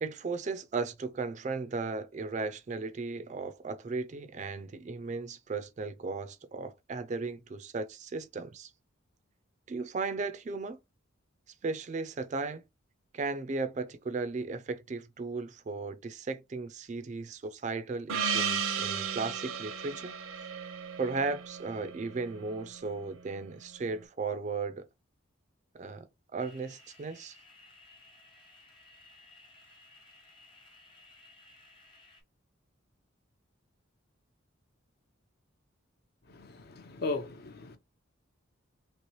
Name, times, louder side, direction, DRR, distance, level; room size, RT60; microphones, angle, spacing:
voice 1, 0.0-8.7 9.7-10.8 11.6-12.6 13.1-20.1 21.0-24.9 25.7-26.1 26.3-27.4, right 4 dB, 35° right, 0.3 m, -36 dB
Gong, 18.1-22.9, right 6 dB, 80° right, 0.6 m, -35 dB
sound 1, 26.4-32.2, left 2 dB, 25° left, 0.9 m, -57 dB
voice 2, 36.3-37.8, left 3 dB, 50° left, 0.5 m, -37 dB
3.0 x 3.0 x 2.9 m
head